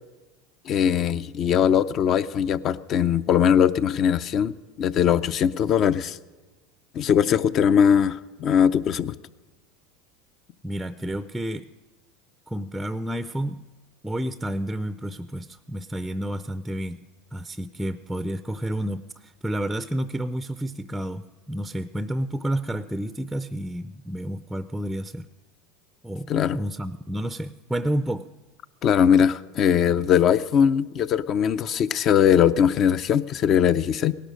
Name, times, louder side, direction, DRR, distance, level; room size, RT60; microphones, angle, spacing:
voice 1, 0.7-6.2 6.9-9.1 26.3-26.6 28.8-34.2, left 8 dB, 45° left, 15 dB, 0.6 m, -20 dB
voice 2, 10.6-11.7 12.5-13.6 14.0-17.0 17.3-25.3 26.0-28.3, right 1 dB, 5° right, 12 dB, 0.5 m, -30 dB
18.0 x 11.5 x 6.4 m, 1.3 s
hypercardioid pair, 100°, 0 cm